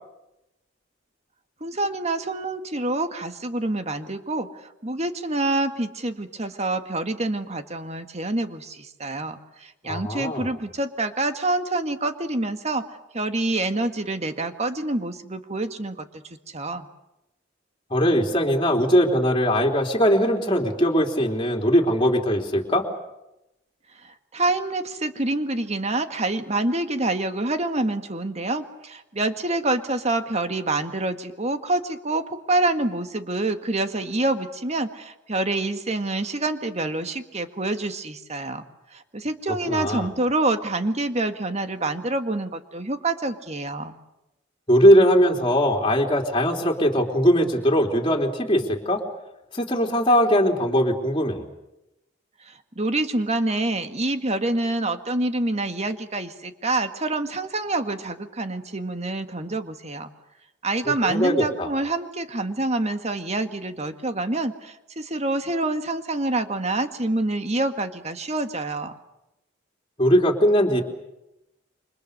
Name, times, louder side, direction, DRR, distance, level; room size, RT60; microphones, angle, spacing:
voice 1, 1.6-16.9 24.0-38.6 38.9-44.0 52.4-60.1 60.6-68.9, right 2 dB, 35° right, 8 dB, 1.9 m, -27 dB
voice 2, 9.9-10.5 17.9-22.9 39.5-40.1 44.7-49.0 49.5-51.4 61.0-61.7 70.0-70.8, equal, 25° left, 1 dB, 3.5 m, -20 dB
29.0 x 25.0 x 6.7 m, 0.90 s
head